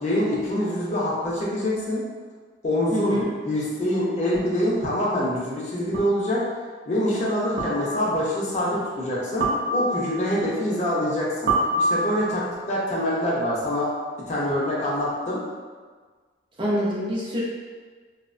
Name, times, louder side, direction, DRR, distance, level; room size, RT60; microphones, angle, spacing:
voice 1, 0.0-2.0 2.6-3.2 3.4-6.4 6.9-13.9 14.3-15.4, left 1 dB, 35° left, -6 dB, 0.5 m, -25 dB
voice 2, 2.9-3.2 16.6-17.4, equal, 25° right, -6 dB, 0.4 m, -25 dB
sound 1, 4.3-4.4 5.9-6.3 7.6-8.1 9.4-10.2 11.5-12.4, right 1 dB, 75° right, 0.6 m, -25 dB
2.9 x 2.0 x 2.4 m, 1.5 s
head